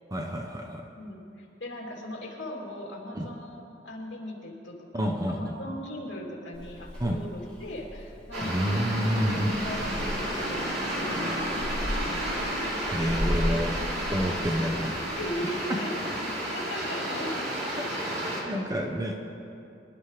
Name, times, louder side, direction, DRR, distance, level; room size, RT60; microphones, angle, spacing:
voice 1, 0.1-0.8 3.1-3.3 4.9-5.5 7.0-7.2 8.4-9.5 12.9-13.7 14.1-15.0 17.8-17.9 18.4-19.1, equal, 20° right, 3 dB, 0.7 m, -28 dB
voice 2, 0.9-8.8 9.3-12.6 13.2-13.4 15.2-15.9 16.5-17.5, left 1 dB, 65° left, -3 dB, 3.0 m, -39 dB
Purr / Meow, 6.5-15.3, equal, 5° left, 3.9 m, -36 dB
sound 1, 8.3-18.4, right 1 dB, 60° right, 3.1 m, -32 dB
24.5 x 11.5 x 3.3 m, 2.7 s
head